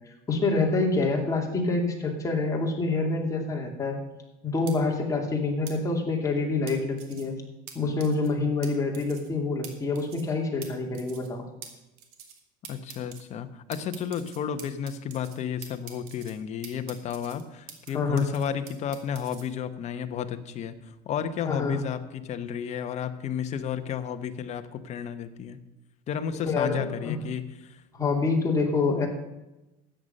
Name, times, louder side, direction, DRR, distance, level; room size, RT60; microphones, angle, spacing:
voice 1, 0.1-4.0 4.4-7.3 7.7-11.4 17.9-18.3 21.4-21.9 26.5-27.2 27.9-29.1, left 3 dB, 15° left, 0 dB, 2.7 m, -27 dB
sound 1, 4.7-4.8 5.7-5.8 6.7-7.2 7.7-7.8 8.0-8.3 8.6-8.7 8.9-9.3 9.6-9.7 9.9-10.3 10.6-10.7 10.9-11.3 11.6-11.7 12.0-12.4 12.6-13.2 13.7-15.4 15.6-16.3 16.6-17.9 18.2-19.4, right 8 dB, 85° right, 2.4 m, -45 dB
voice 2, 12.7-20.7 21.0-25.6 26.1-27.4 27.7-27.8, left 8 dB, 35° left, 8 dB, 1.1 m, -32 dB
13.5 x 9.1 x 5.4 m, 1.0 s
supercardioid pair, 130°, 19 cm